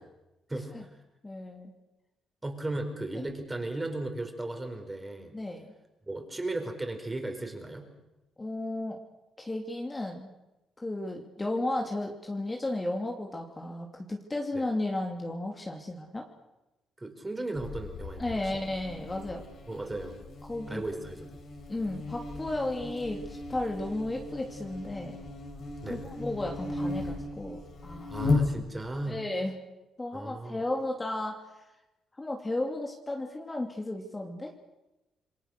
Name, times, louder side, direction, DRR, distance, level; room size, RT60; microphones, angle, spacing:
voice 1, 0.5-0.9 2.4-5.3 6.1-7.9 14.5-14.6 17.0-18.4 19.7-20.2 20.7-21.3 25.8-26.1 28.1-29.2 30.1-30.6, right 2 dB, 15° right, 5 dB, 5.1 m, -36 dB
voice 2, 1.2-1.7 5.3-5.7 8.4-9.0 9.4-10.3 10.8-16.3 18.2-19.4 20.4-20.8 21.7-25.2 25.9-28.1 29.1-29.6 30.0-31.6 32.1-34.5, left 2 dB, 20° left, 1 dB, 2.8 m, -34 dB
Buzz, 17.6-29.0, left 2 dB, 60° left, 6.0 m, -36 dB
27.5 x 22.0 x 6.7 m, 0.96 s
cardioid pair, 90°, 0 cm